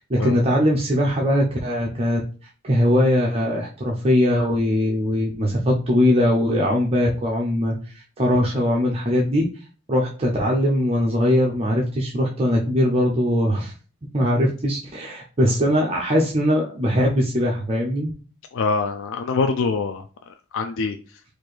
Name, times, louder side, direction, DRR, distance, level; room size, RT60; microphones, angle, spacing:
voice 1, 0.1-2.2 2.6-9.4 9.9-13.7 14.1-18.1, equal, 30° right, -2 dB, 0.7 m, -21 dB
voice 2, 18.5-20.0 20.5-21.0, left 4 dB, 60° left, 7 dB, 0.4 m, -24 dB
4.4 x 2.6 x 4.6 m, 0.38 s
head